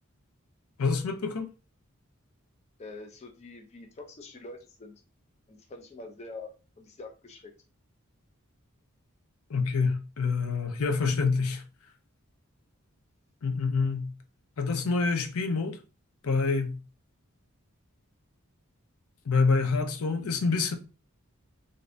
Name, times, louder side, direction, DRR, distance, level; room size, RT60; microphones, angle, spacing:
voice 1, 0.8-1.5 9.5-11.6 13.4-14.1 14.6-15.8 16.2-16.8 19.3-20.7, left 4 dB, 85° left, 0.6 m, -27 dB
voice 2, 2.8-4.9 5.5-7.5, left 2 dB, 30° left, 0.4 m, -45 dB
3.2 x 2.6 x 2.5 m
head